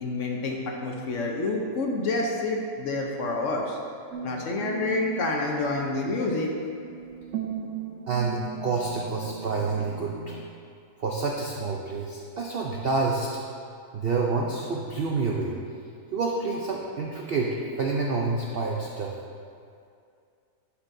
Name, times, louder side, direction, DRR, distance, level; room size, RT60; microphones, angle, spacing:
voice 1, 0.0-3.8 4.2-6.5, left 2 dB, 60° left, 0 dB, 0.9 m, -28 dB
sound 1, 4.1-10.4, right 8 dB, 60° right, 0.9 m, -38 dB
voice 2, 8.1-10.4 11.0-13.3 13.9-15.5 16.1-19.1, right 3 dB, 90° right, -1 dB, 0.5 m, -28 dB
11.5 x 5.7 x 2.6 m, 2.4 s
omnidirectional pair, 1.8 m